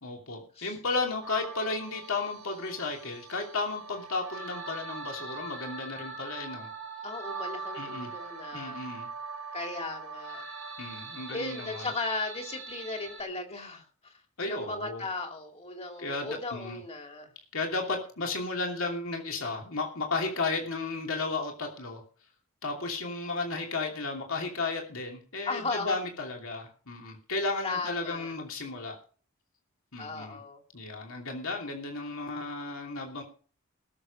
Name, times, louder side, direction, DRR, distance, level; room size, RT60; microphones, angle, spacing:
voice 1, 0.0-6.7 7.7-8.1 8.5-9.1 10.8-11.9 14.4-15.0 16.0-16.8 17.5-22.0 22.6-29.0 29.9-30.4 30.7-33.2, left 3 dB, 60° left, 2 dB, 2.9 m, -34 dB
sound 1, 1.2-13.2, right 4 dB, 60° right, 2.1 m, -42 dB
voice 2, 7.0-8.8 9.5-10.4 11.3-14.2 14.5-17.3 25.4-26.0 27.6-28.4 30.0-30.6, left 3 dB, 30° left, 3 dB, 2.7 m, -36 dB
19.5 x 7.1 x 5.4 m, 0.41 s
head